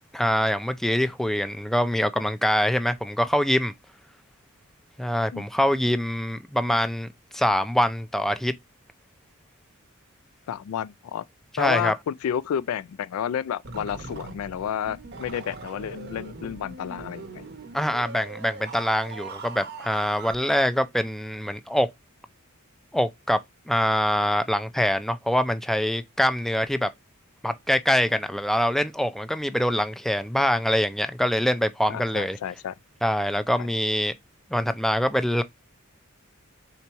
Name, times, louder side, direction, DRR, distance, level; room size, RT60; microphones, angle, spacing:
voice 1, 0.1-3.7 5.0-7.1 7.3-8.5 11.6-11.9 17.7-21.9 22.9-23.4 23.7-26.9 27.4-32.4 33.0-34.1 34.5-35.4, equal, ahead, 0.4 m, -24 dB
voice 2, 10.5-11.3 11.6-17.5 31.9-32.7 33.6-33.7, left 9 dB, 90° left, 0.3 m, -30 dB
sound 1, 13.6-20.4, right 3 dB, 55° right, 0.7 m, -40 dB
4.0 x 2.9 x 4.5 m
head